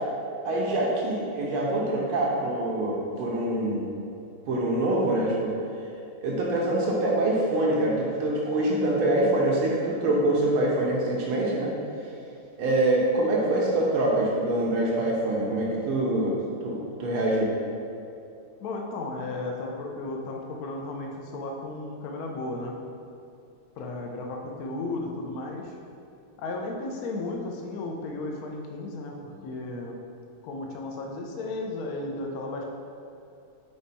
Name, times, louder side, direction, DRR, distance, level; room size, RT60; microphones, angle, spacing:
voice 1, 0.4-3.8 4.5-5.5 6.2-11.7 12.6-17.5, right 1 dB, 85° right, -4 dB, 1.7 m, -25 dB
voice 2, 18.6-22.8 23.8-25.8 26.4-30.0 30.4-32.6, left 2 dB, 65° left, 1 dB, 0.9 m, -34 dB
5.2 x 4.5 x 4.2 m, 2.7 s
omnidirectional pair, 2.3 m